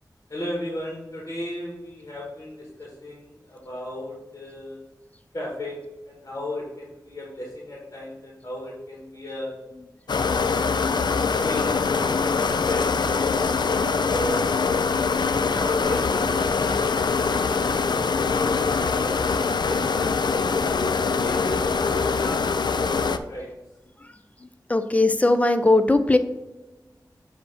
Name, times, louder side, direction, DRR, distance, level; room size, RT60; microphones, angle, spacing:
voice 1, 0.3-4.8 5.3-9.5 11.4-13.5 14.1-14.6 15.4-17.9 18.3-22.5 22.8-23.5, left 1 dB, 40° left, -4 dB, 1.6 m, -35 dB
sound 1, 10.1-23.2, left 5 dB, 75° left, 0.4 m, -23 dB
voice 2, 24.0-26.2, left 2 dB, 20° left, 9 dB, 0.5 m, -20 dB
7.6 x 2.9 x 5.7 m, 1.1 s
wide cardioid pair, 80°, 8 cm